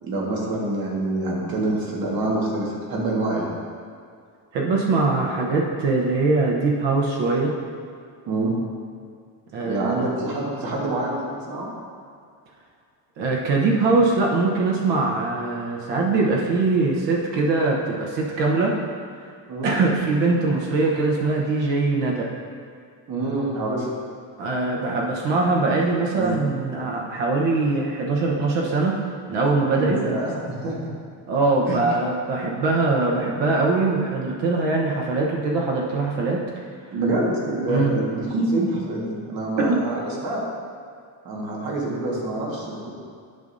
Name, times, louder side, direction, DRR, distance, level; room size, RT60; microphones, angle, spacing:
voice 1, 0.0-3.5 8.3-8.5 9.6-11.7 19.5-19.7 23.1-23.9 26.1-26.4 29.7-30.9 31.6-31.8 36.9-40.4 41.2-42.9, right 2 dB, 55° right, -4 dB, 1.7 m, -26 dB
voice 2, 4.5-7.5 9.5-10.0 13.2-18.8 19.6-22.3 24.4-29.0 29.3-30.0 31.3-36.4 37.7-38.0 39.6-39.8, right 3 dB, 75° right, -2 dB, 1.1 m, -22 dB
12.0 x 5.2 x 2.7 m, 2.3 s
cardioid pair, 170°, 44 cm